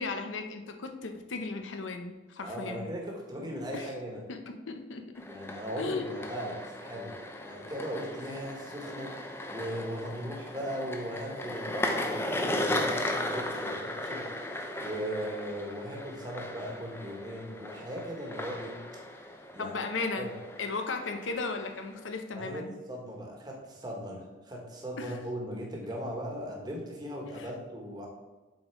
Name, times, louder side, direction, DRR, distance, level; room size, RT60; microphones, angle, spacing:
voice 1, 0.0-2.9 3.7-3.9 4.3-4.4 4.7-5.0 5.8-6.1 19.6-20.3 20.6-22.8 25.0-25.2 27.4-27.5, left 3 dB, 90° left, 6 dB, 0.8 m, -35 dB
voice 2, 2.4-4.2 5.3-19.0 19.5-19.8 20.2-20.3 22.4-28.1, equal, 20° right, 0 dB, 1.3 m, -38 dB
sound 1, 5.2-22.1, left 1 dB, 15° left, 0.5 m, -37 dB
7.5 x 4.4 x 4.5 m, 1.2 s
head